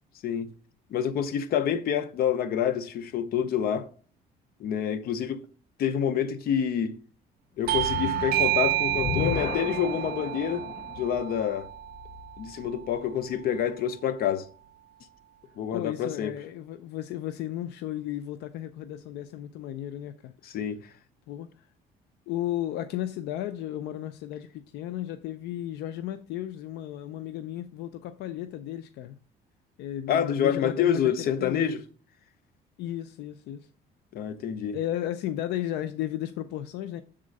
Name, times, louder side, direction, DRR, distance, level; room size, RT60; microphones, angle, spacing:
voice 1, 0.9-3.9 4.6-5.4 5.8-7.0 7.6-10.7 11.0-11.7 12.4-14.5 15.6-16.3 20.4-20.8 30.1-31.8 34.1-34.8, left 8 dB, 65° left, 0.8 m, -27 dB
sound 1, 7.6-12.9, left 7 dB, 35° left, 0.5 m, -35 dB
Bell / Doorbell, 7.7-12.8, right 15 dB, 60° right, 0.4 m, -30 dB
voice 2, 15.7-20.3 21.3-21.5 22.3-29.2 29.8-31.8 32.8-33.7 34.7-37.0, left 12 dB, 85° left, 0.5 m, -34 dB
7.4 x 3.7 x 5.2 m
cardioid pair, 110°, 17 cm